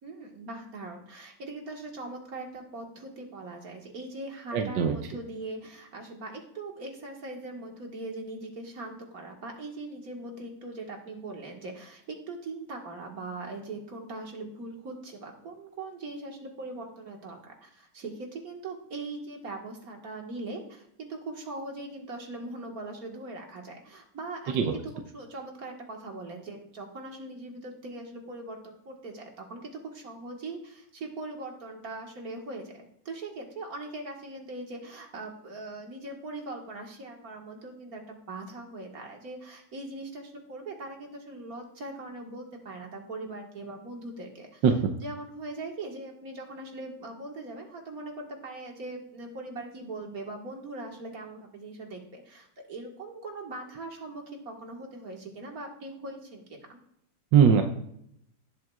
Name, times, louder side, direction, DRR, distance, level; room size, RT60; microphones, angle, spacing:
voice 1, 0.0-24.8 25.1-44.6 44.9-56.8, right 2 dB, 55° right, 1 dB, 2.0 m, -40 dB
voice 2, 4.5-5.0 24.5-24.7 44.6-44.7 57.3-57.6, right 7 dB, 80° right, 5 dB, 1.5 m, -20 dB
17.5 x 7.6 x 2.4 m, 0.73 s
omnidirectional pair, 2.0 m